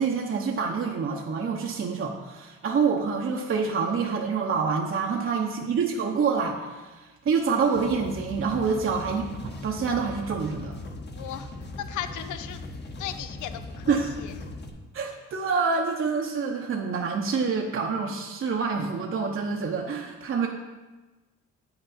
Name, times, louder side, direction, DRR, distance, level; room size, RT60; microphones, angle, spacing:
voice 1, 0.0-10.7 13.9-14.2 14.9-20.5, right 5 dB, 45° right, 1 dB, 0.8 m, -27 dB
sound 1, 7.6-14.7, left 2 dB, 35° left, 1.1 m, -39 dB
voice 2, 11.2-11.5 11.8-12.6 13.0-14.0 14.2-14.3, left 10 dB, 80° left, 11 dB, 0.6 m, -36 dB
8.6 x 5.9 x 4.1 m, 1.2 s
cardioid pair, 90°, 30 cm